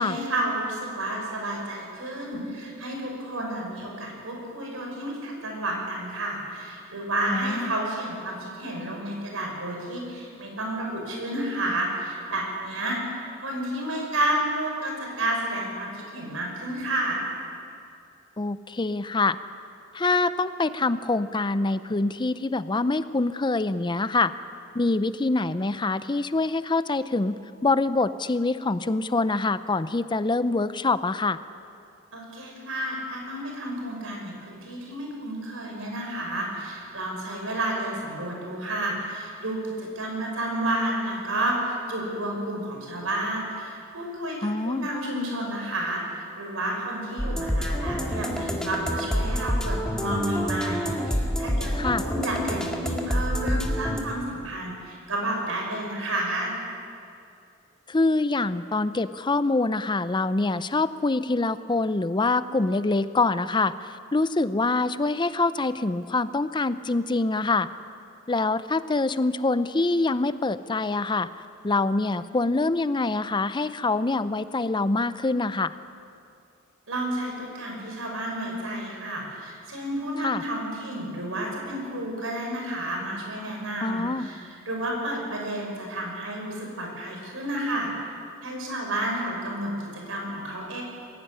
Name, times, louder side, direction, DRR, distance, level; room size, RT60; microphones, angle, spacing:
voice 1, 0.0-17.2 32.1-44.4 44.6-56.5 76.9-88.1 88.4-90.8, right 1 dB, 75° right, 0 dB, 5.9 m, -31 dB
voice 2, 7.3-7.7 18.4-19.4 19.9-24.3 24.7-27.4 27.6-31.4 44.4-44.9 51.7-52.0 57.9-67.7 68.3-71.3 71.6-75.7 80.2-80.4 83.8-84.3, left 3 dB, 20° left, 14 dB, 0.5 m, -25 dB
Ti-Ti-Ti-Ti-Ti-Ti-Ti, 47.2-54.0, equal, 5° left, 2.0 m, -27 dB
21.5 x 16.0 x 9.7 m, 2.5 s
head